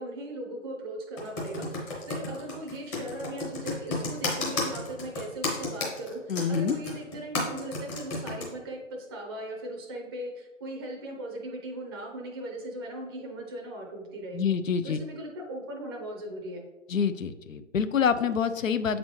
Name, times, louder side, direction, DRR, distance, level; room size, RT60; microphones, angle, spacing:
voice 1, 0.0-14.5 14.8-16.6, right 1 dB, 20° right, 0 dB, 0.5 m, -38 dB
Computer keyboard, 1.2-8.5, left 3 dB, 15° left, 0.7 m, -32 dB
voice 2, 6.3-6.8 14.3-15.0 16.9-19.0, left 7 dB, 80° left, 12 dB, 0.5 m, -26 dB
7.5 x 4.0 x 3.1 m, 1.2 s
figure-of-eight pair, 130°, 39 cm